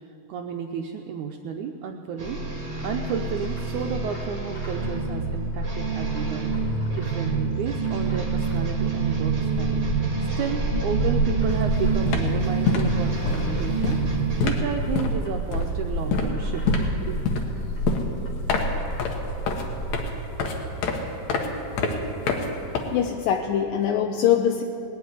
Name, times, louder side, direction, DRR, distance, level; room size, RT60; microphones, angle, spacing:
voice 1, 0.3-2.4 2.8-9.8 10.4-17.2, right 7 dB, 75° right, 3 dB, 1.8 m, -32 dB
Bird, 2.2-20.0, right 1 dB, 40° left, 1.6 m, -31 dB
sound 1, 2.2-14.5, right 5 dB, 25° right, 1.2 m, -28 dB
sound 2, 11.5-11.7 11.9-23.4, left 3 dB, 60° left, 2.2 m, -27 dB
voice 2, 22.9-24.6, left 9 dB, 80° left, 4 dB, 2.2 m, -22 dB
19.5 x 7.0 x 9.6 m, 2.6 s
omnidirectional pair, 4.1 m